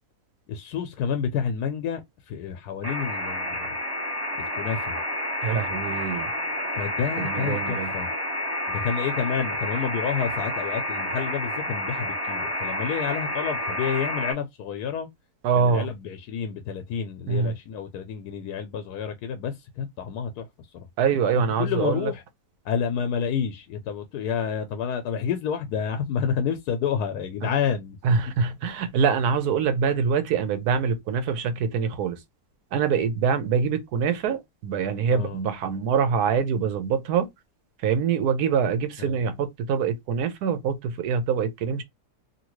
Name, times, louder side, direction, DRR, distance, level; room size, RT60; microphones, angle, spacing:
voice 1, 0.5-2.0 2.3-3.7 4.4-5.0 6.7-8.1 8.7-15.1 15.5-20.5 20.7-20.9 21.6-22.2 22.6-28.0 35.1-35.5 39.0-39.2, left 7 dB, 85° left, 1.1 m, -29 dB
sound 1, 2.8-14.3, left 1 dB, 25° right, 0.6 m, -29 dB
voice 2, 5.4-6.3 7.2-7.9 15.4-15.9 17.3-17.5 21.0-22.1 27.4-27.5 28.0-32.2 32.7-37.3 37.8-41.8, right 6 dB, 80° right, 1.2 m, -24 dB
2.8 x 2.7 x 3.0 m
omnidirectional pair, 1.6 m